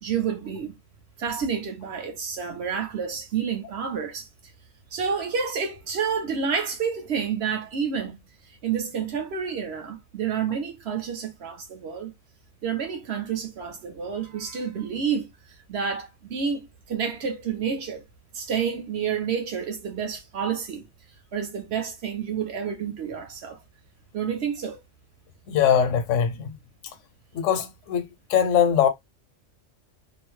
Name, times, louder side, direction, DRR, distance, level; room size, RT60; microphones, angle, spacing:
voice 1, 0.0-0.7 1.2-4.3 4.9-8.2 8.4-12.1 12.6-15.3 15.7-18.0 18.3-20.9 21.3-23.6 24.1-24.8, right 7 dB, 60° right, 1.0 m, -29 dB
voice 2, 25.5-26.5 27.3-28.9, left 8 dB, 85° left, 0.9 m, -22 dB
2.8 x 2.0 x 3.1 m
omnidirectional pair, 1.3 m